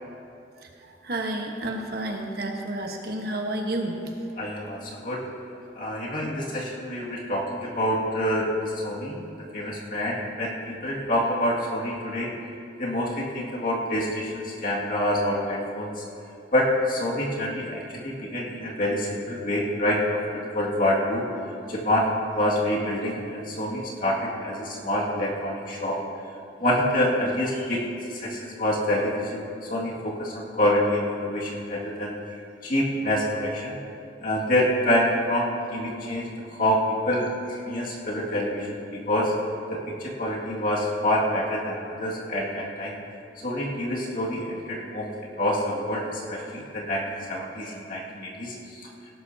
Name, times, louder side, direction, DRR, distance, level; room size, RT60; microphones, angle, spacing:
voice 1, 0.6-4.1, right 1 dB, 60° right, 2 dB, 1.3 m, -31 dB
voice 2, 4.4-5.3 5.8-12.3 12.8-16.1 16.5-21.3 21.7-26.0 26.6-33.8 34.2-39.3 39.7-43.0 43.4-48.9, left 1 dB, 50° left, -4 dB, 2.2 m, -27 dB
18.0 x 11.5 x 2.8 m, 2.6 s
head